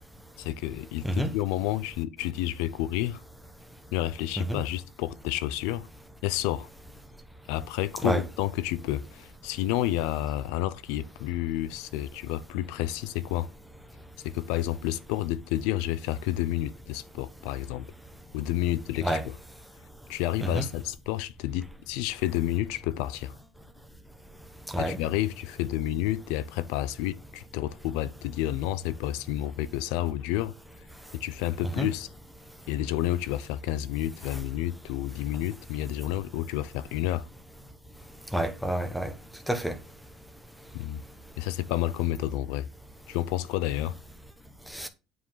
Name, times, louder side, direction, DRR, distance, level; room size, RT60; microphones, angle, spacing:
voice 1, 0.4-3.2 3.9-5.9 6.2-6.7 7.5-13.5 14.2-17.9 18.3-19.4 20.1-23.4 24.8-30.5 31.1-32.1 32.7-37.3 40.7-41.0 41.4-42.7 43.1-44.0, left 14 dB, 75° left, 0.6 m, -30 dB
voice 2, 38.3-39.1 39.5-39.7 44.7-44.9, right 1 dB, ahead, 0.9 m, -28 dB
9.3 x 5.1 x 5.6 m
cardioid pair, 175°, 0 cm